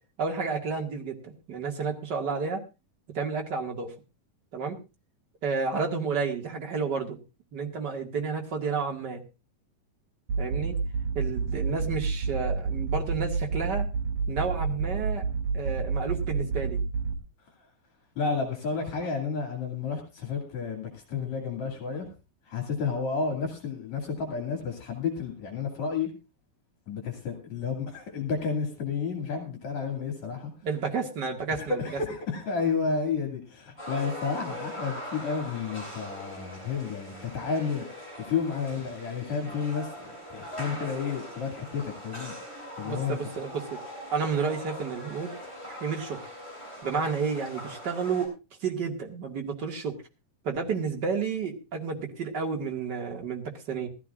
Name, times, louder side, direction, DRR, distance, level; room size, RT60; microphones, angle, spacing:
voice 1, 0.2-2.6 3.1-3.9 4.5-4.8 5.4-7.2 7.5-9.2 10.4-10.8 11.1-13.9 14.3-15.2 15.5-16.8 30.6-31.8 40.7-40.8 42.8-43.8 44.1-45.3 45.6-46.2 46.8-48.3 48.6-50.0 50.4-53.9, right 5 dB, 35° right, 2 dB, 2.2 m, -31 dB
sound 1, 10.3-17.1, right 4 dB, 60° right, 3.5 m, -29 dB
voice 2, 18.2-22.1 22.5-26.1 26.9-30.5 31.6-37.8 38.2-42.3 42.8-43.2, left 5 dB, 60° left, 2 dB, 3.6 m, -31 dB
sound 2, 33.8-48.3, equal, 10° left, 6.6 m, -41 dB
20.5 x 14.0 x 2.5 m, 0.28 s
omnidirectional pair, 3.7 m